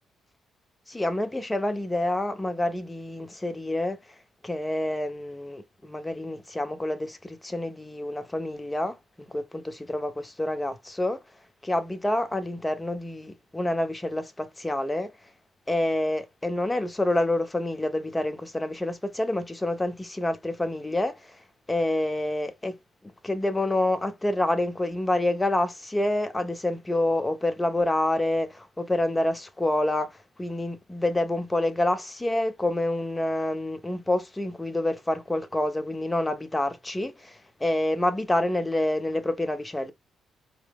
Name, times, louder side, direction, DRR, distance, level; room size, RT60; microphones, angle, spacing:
voice 1, 0.9-4.2 4.4-11.2 11.6-15.1 15.7-22.8 23.2-39.9, left 1 dB, 15° left, 0.7 m, -28 dB
4.4 x 2.1 x 3.3 m
cardioid pair, 80°, 0 cm